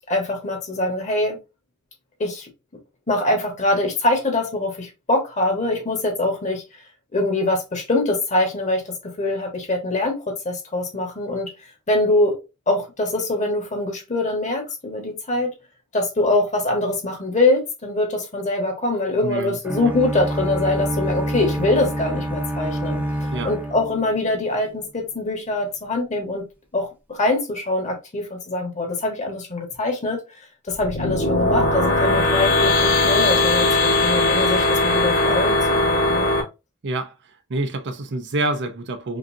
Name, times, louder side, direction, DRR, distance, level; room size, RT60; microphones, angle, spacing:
voice 1, 0.1-1.4 2.2-2.5 3.1-6.6 7.1-10.2 10.4-11.5 11.9-12.4 12.7-15.5 15.9-23.0 23.4-26.4 26.7-30.2 30.7-36.3, left 2 dB, 35° left, 1.3 m, -23 dB
voice 2, 19.2-19.6 23.3-23.5 36.8-37.1 37.5-39.2, right 2 dB, 55° right, 0.6 m, -26 dB
sound 1, 19.6-24.6, right 1 dB, 10° right, 0.7 m, -27 dB
sound 2, 30.7-36.4, left 2 dB, 65° left, 1.6 m, -19 dB
5.2 x 2.4 x 2.7 m
head